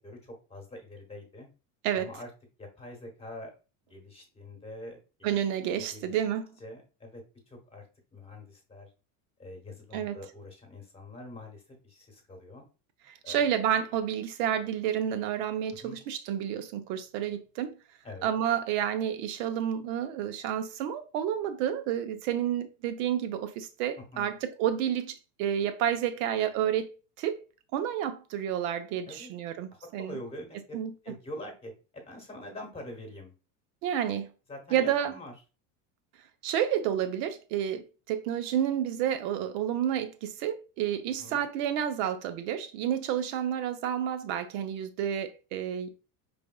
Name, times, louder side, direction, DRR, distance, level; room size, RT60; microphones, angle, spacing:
voice 1, 0.0-1.5 1.9-2.3 2.6-3.5 3.9-5.3 5.7-6.2 6.6-7.9 8.1-8.9 9.4-12.7 13.2-13.4 15.8-16.0 18.0-18.3 24.0-24.3 29.1-29.3 29.7-33.3 34.5-35.3 41.2-41.4, left 1 dB, 15° left, 1.1 m, -45 dB
voice 2, 5.2-6.5 9.9-10.2 13.3-17.7 18.2-27.4 27.7-30.2 30.7-30.9 33.8-34.3 34.7-35.1 36.4-45.9, right 10 dB, 65° right, 0.8 m, -30 dB
4.9 x 3.5 x 2.3 m
supercardioid pair, 130°, 42 cm